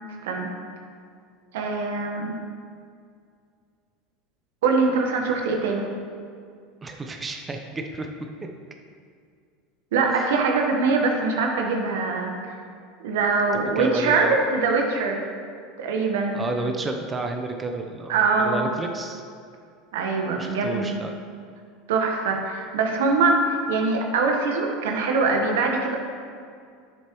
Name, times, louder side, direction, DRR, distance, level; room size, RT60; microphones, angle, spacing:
voice 1, 1.5-2.4 4.6-5.9 9.9-12.6 13.0-15.3 15.8-16.4 18.1-18.7 19.9-21.0 21.9-26.0, right 4 dB, 80° right, 1 dB, 1.2 m, -23 dB
voice 2, 6.8-8.1 10.1-10.3 13.5-14.4 16.3-19.2 20.4-21.1, right 2 dB, 20° right, 4 dB, 0.8 m, -31 dB
10.5 x 7.4 x 3.1 m, 2.2 s
hypercardioid pair, 95°, 0 cm